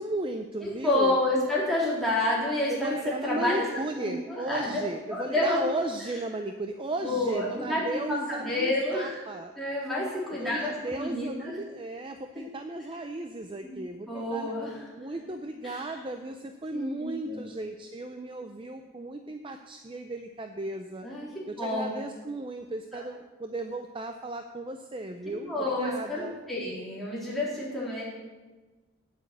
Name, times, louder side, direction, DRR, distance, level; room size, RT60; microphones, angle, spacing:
voice 1, 0.0-1.2 2.7-9.5 10.4-14.5 15.0-21.1 21.5-26.3, right 2 dB, 25° right, 6 dB, 0.5 m, -35 dB
voice 2, 0.6-3.7 4.0-4.8 5.1-5.6 7.0-9.2 9.6-11.6 13.6-13.7 14.1-14.9 15.6-15.9 16.7-17.4 21.0-21.3 21.6-21.9 22.9-23.0 25.3-28.0, left 1 dB, ahead, -7 dB, 3.7 m, -29 dB
8.9 x 8.1 x 8.2 m, 1.3 s
head